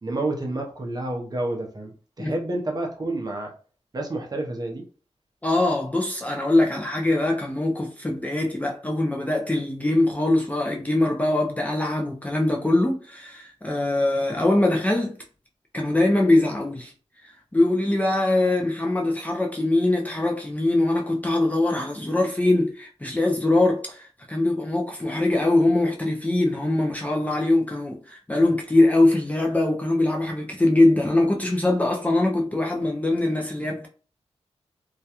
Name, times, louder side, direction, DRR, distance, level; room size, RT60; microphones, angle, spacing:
voice 1, 0.0-1.9 2.2-3.5 3.9-4.8, right 2 dB, 35° right, 0.6 m, -29 dB
voice 2, 5.4-15.2 15.7-16.9 17.2-33.9, left 2 dB, 15° left, 0.4 m, -22 dB
2.3 x 2.1 x 2.8 m
wide cardioid pair, 105°, 12 cm